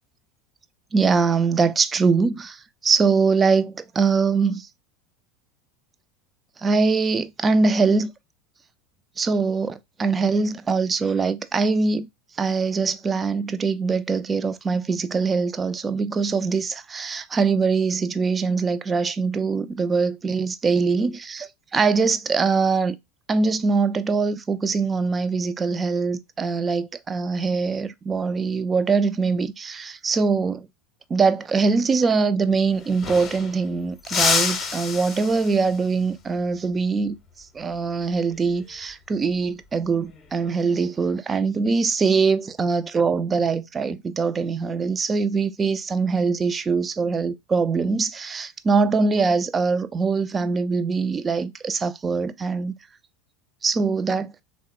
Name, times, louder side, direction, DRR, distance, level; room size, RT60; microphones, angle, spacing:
voice 1, 0.9-4.7 6.6-8.1 9.2-12.1 12.4-23.0 23.3-30.7 31.1-52.7 53.6-54.3, right 4 dB, 25° right, 0.3 m, -23 dB
sound 1, 32.4-32.5 32.7-33.7 34.0-35.8 38.3-38.6 40.0-40.5, left 5 dB, 30° left, 0.7 m, -27 dB
3.5 x 2.1 x 2.9 m
figure-of-eight pair, 75°, 0 cm